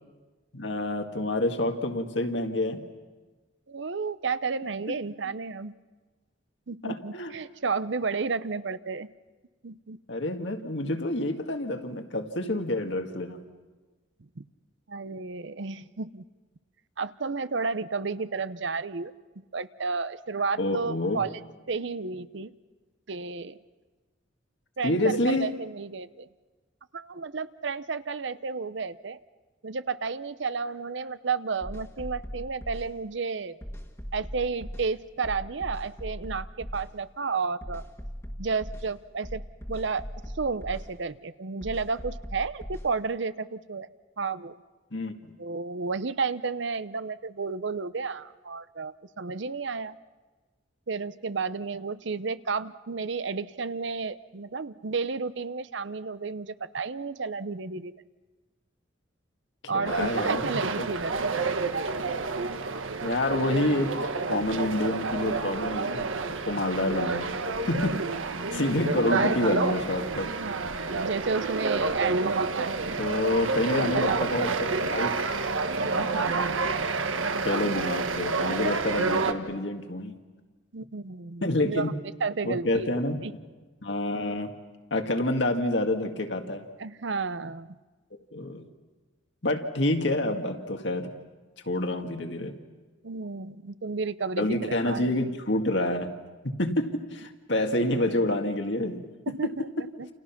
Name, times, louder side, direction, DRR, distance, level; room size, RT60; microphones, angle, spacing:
voice 1, 0.5-2.9 4.9-5.0 6.8-7.3 10.1-13.4 20.6-21.2 24.8-25.5 44.9-45.1 59.7-60.9 63.0-67.3 67.7-68.0 68.5-70.3 73.0-75.2 75.8-76.4 77.4-80.2 81.4-81.9 82.4-83.2 83.8-84.5 84.9-86.6 88.3-88.6 89.4-91.1 91.7-92.6 94.4-96.2 96.6-99.9, left 1 dB, 65° left, 5 dB, 2.0 m, -28 dB
voice 2, 3.7-5.7 6.7-9.1 9.6-10.0 14.4-14.5 14.9-16.2 17.0-19.1 19.5-21.4 21.7-22.5 23.1-23.6 24.8-26.3 26.9-29.2 29.6-33.6 34.1-37.8 38.4-39.4 39.7-40.0 40.4-43.9 44.2-44.6 45.4-50.0 50.9-57.9 59.7-61.1 67.9-68.0 68.3-68.6 70.4-73.0 73.9-74.6 74.8-74.9 80.7-81.9 82.2-82.9 83.2-83.3 86.8-87.7 93.0-95.0 99.3-99.5 100.0-100.1, right 4 dB, 65° right, 14 dB, 0.7 m, -32 dB
sound 1, 31.6-32.9 33.6-34.9 35.2-36.9 37.6-38.9 39.2-40.9 41.6-42.9, equal, 15° left, 1.7 m, -39 dB
sound 2, 59.8-79.3, right 3 dB, 90° right, 1.4 m, -29 dB
29.0 x 29.0 x 5.9 m, 1.3 s
head